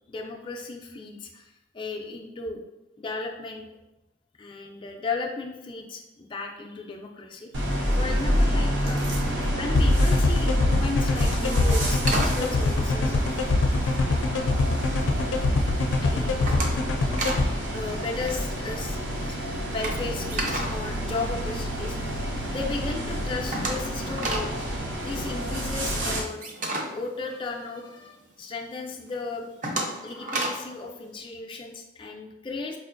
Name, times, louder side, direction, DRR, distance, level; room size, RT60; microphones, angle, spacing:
voice 1, 0.1-2.6 3.0-3.7 4.4-7.5 8.0-13.2 16.0-16.6 17.7-19.4 19.7-22.0 22.5-24.5 25.0-26.4 26.9-29.5 30.0-32.8, left 3 dB, 25° left, 1 dB, 0.3 m, -35 dB
sound 1, 7.5-26.2, equal, 75° right, 0.7 m, -28 dB
sound 2, 9.8-17.5, left 3 dB, 90° left, 0.4 m, -23 dB
sound 3, 11.5-14.0 14.5-15.0 15.4-15.8 16.0-17.5 17.8-17.9 18.2-21.9 22.3-22.4 22.7-22.8 23.0-28.1 28.5-28.6 29.1-30.7, right 2 dB, 40° right, 0.4 m, -33 dB
4.4 x 2.4 x 2.5 m, 1.0 s
head